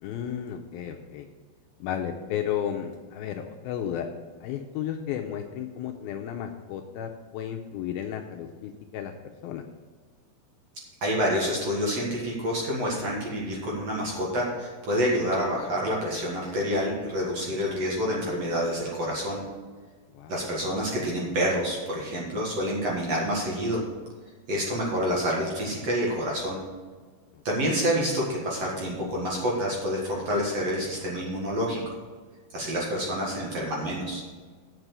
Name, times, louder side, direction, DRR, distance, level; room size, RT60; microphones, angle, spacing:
voice 1, 0.0-1.3 1.8-4.1 4.4-9.6 20.1-20.3 27.3-27.4, left 9 dB, 80° left, 4 dB, 2.3 m, -33 dB
voice 2, 11.0-19.4 20.3-23.8 24.5-26.6 27.4-32.0 32.5-34.2, equal, 50° right, -3 dB, 2.3 m, -28 dB
8.8 x 6.1 x 6.7 m, 1.5 s
omnidirectional pair, 4.7 m